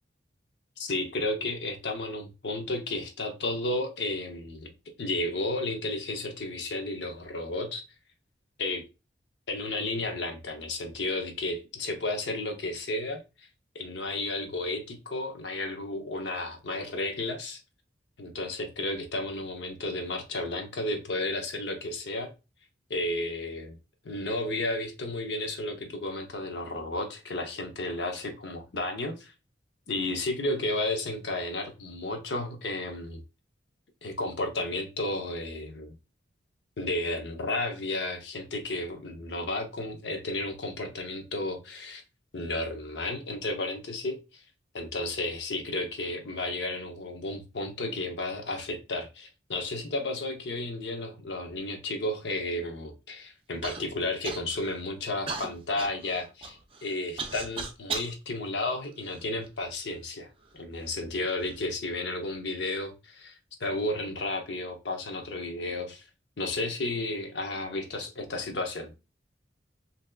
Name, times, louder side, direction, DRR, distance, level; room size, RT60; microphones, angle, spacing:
voice 1, 0.8-4.7 5.0-7.8 8.6-8.8 9.5-13.5 13.7-17.6 18.2-22.3 22.9-23.8 24.0-29.3 29.9-33.2 34.0-35.9 36.8-42.0 42.3-44.4 44.7-60.3 60.5-66.0 66.4-68.9, left 2 dB, 70° left, 0.7 m, -33 dB
Human voice / Cough, 53.6-53.8 54.2-54.7 55.3-58.1 58.8-59.7 60.4-60.5 61.2-61.6, right 4 dB, 30° right, 0.4 m, -37 dB
3.4 x 2.8 x 2.2 m
head